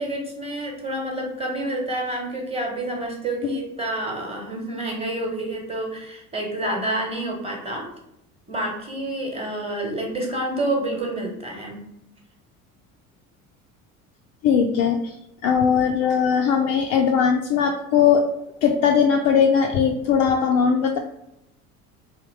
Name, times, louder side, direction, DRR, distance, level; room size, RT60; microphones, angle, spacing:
voice 1, 0.0-7.9 8.5-11.8, right 1 dB, 15° right, 0 dB, 1.1 m, -28 dB
voice 2, 14.4-15.1 15.4-18.2 18.6-21.0, left 7 dB, 40° left, 2 dB, 0.4 m, -19 dB
3.5 x 2.7 x 3.2 m, 0.82 s
hypercardioid pair, 65°, 44 cm